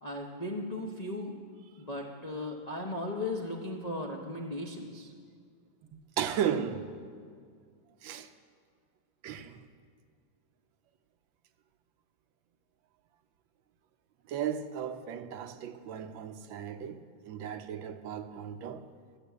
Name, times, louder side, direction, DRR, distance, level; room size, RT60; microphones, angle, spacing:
voice 1, 0.0-1.4 1.8-5.1, left 2 dB, 40° left, 0.5 m, -37 dB
voice 2, 6.2-6.9 8.0-8.3 9.2-9.6 14.3-18.9, right 8 dB, 80° right, 1.4 m, -35 dB
12.0 x 7.5 x 8.2 m
omnidirectional pair, 2.2 m